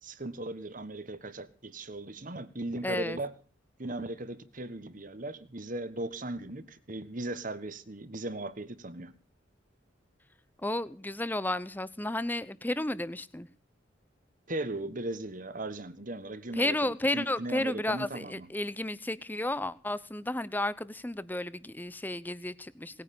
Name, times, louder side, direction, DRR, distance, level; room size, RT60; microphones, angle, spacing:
voice 1, 0.0-3.3 3.8-9.1 14.5-18.5, right 2 dB, 45° right, 1.3 m, -38 dB
voice 2, 2.8-3.2 10.6-13.5 16.6-23.0, left 1 dB, 10° left, 0.7 m, -32 dB
19.5 x 9.6 x 7.0 m
head